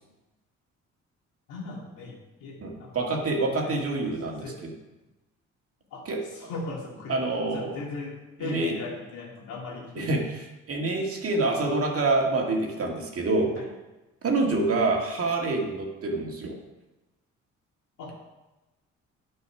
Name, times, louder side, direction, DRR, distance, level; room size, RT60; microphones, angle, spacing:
voice 1, 1.5-3.8 4.4-4.6 5.9-7.2 7.5-10.3 13.5-13.7 14.8-14.9 18.0-18.2, left 3 dB, 90° left, -2 dB, 2.5 m, -38 dB
voice 2, 2.6-4.7 6.1-6.2 7.1-7.8 8.4-8.7 10.0-10.2 10.7-13.5 14.2-16.6, right 3 dB, 50° right, 1 dB, 1.9 m, -26 dB
9.2 x 5.4 x 5.7 m, 1.1 s
cardioid pair, 90°, 30 cm